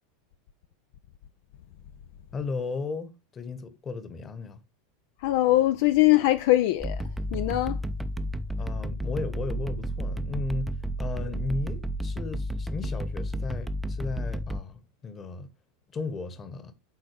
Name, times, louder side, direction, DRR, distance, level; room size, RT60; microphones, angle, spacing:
voice 1, 2.3-4.6 8.6-15.5 15.9-16.7, left 4 dB, 25° left, 1.2 m, -35 dB
voice 2, 5.2-7.0 7.3-7.8, left 16 dB, 55° left, 0.4 m, -22 dB
sound 1, 6.8-14.6, equal, 10° right, 0.6 m, -32 dB
10.5 x 4.2 x 3.3 m
figure-of-eight pair, 85°, 0 cm